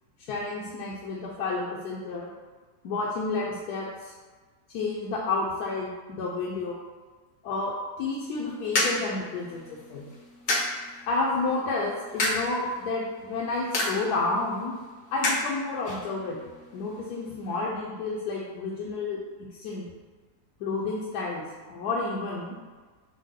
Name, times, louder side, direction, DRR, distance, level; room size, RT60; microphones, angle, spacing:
voice 1, 0.3-2.3 2.8-4.1 4.7-6.8 7.4-10.0 11.1-14.7 15.1-16.4 16.7-19.2 19.5-19.8 20.6-21.4 21.7-22.6, left 3 dB, 80° left, -4 dB, 1.2 m, -30 dB
sound 1, 8.2-17.6, left 2 dB, 55° left, 0.7 m, -33 dB
6.3 x 2.1 x 3.7 m, 1.4 s
omnidirectional pair, 1.7 m